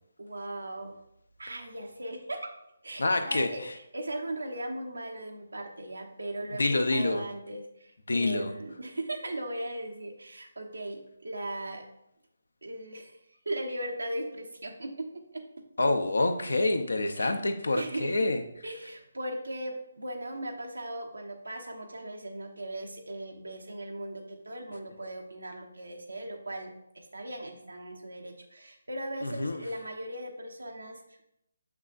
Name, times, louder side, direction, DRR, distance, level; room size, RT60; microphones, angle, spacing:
voice 1, 0.2-1.0 1.4-2.5 2.8-11.8 12.6-15.6 17.2-17.3 17.7-18.3 18.6-31.2, right 1 dB, 90° right, 2 dB, 1.0 m, -38 dB
voice 2, 3.0-3.5 6.6-7.2 8.1-8.5 15.8-18.4 29.2-29.6, left 2 dB, 80° left, 7 dB, 0.7 m, -27 dB
6.4 x 5.9 x 2.5 m, 0.79 s
figure-of-eight pair, 150°, 0 cm